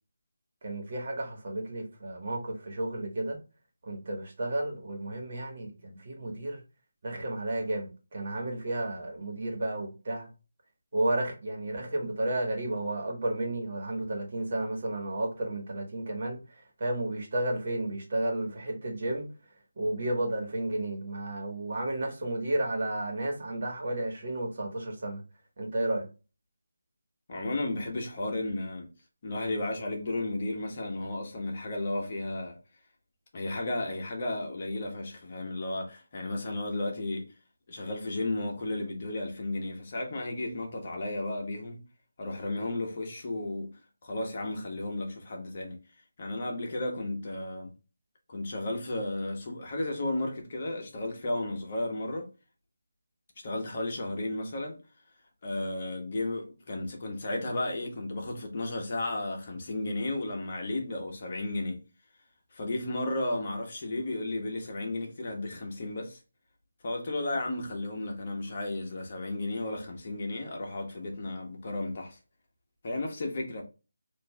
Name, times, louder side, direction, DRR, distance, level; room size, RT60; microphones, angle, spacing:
voice 1, 0.6-3.4 3.8-6.6 7.0-10.3 10.9-19.3 19.8-25.2 25.6-26.1, right 1 dB, 45° right, 1.4 m, -32 dB
voice 2, 27.3-28.9 29.2-32.6 33.3-37.3 37.7-41.8 42.2-43.7 44.0-45.8 46.2-47.7 48.3-52.3 53.4-54.8 55.4-61.8 62.5-66.2 66.8-72.2 72.8-73.6, left 2 dB, 40° left, 1.0 m, -33 dB
6.1 x 2.6 x 2.3 m
figure-of-eight pair, 170°, 0 cm